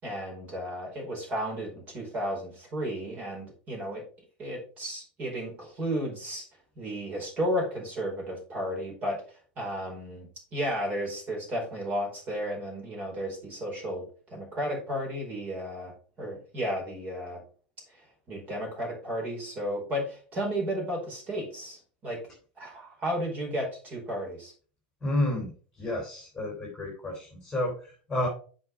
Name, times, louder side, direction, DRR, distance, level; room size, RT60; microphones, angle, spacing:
voice 1, 0.0-4.0 4.4-6.4 6.8-9.2 9.6-17.4 17.9-18.0 18.3-22.2 22.6-24.5, equal, 30° right, 0 dB, 4.8 m, -33 dB
voice 2, 25.0-25.5 25.8-28.3, left 1 dB, 5° left, -2 dB, 3.3 m, -30 dB
8.0 x 5.0 x 4.7 m, 0.40 s
supercardioid pair, 140°, 5 cm